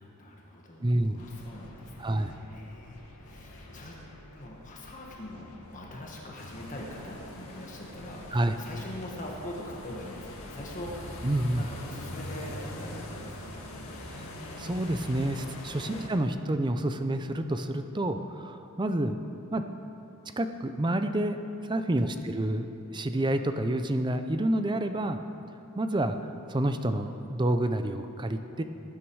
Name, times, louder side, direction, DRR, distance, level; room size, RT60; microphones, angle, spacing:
voice 1, 0.0-3.9 4.3-13.5 15.8-16.1 22.0-22.3, left 1 dB, 35° left, -2 dB, 1.7 m, -43 dB
voice 2, 0.8-1.2 2.0-2.3 8.3-8.5 11.2-11.7 14.1-14.3 14.6-19.1 19.5-19.6 20.4-21.4 21.6-22.7 22.9-25.2 25.8-26.2 26.5-28.6, right 1 dB, 20° right, 8 dB, 0.5 m, -28 dB
sound 1, 1.1-15.9, left 1 dB, 85° left, 1.7 m, -51 dB
sound 2, 6.4-16.1, left 1 dB, 65° left, 1.8 m, -42 dB
19.0 x 9.3 x 4.8 m, 2.9 s
head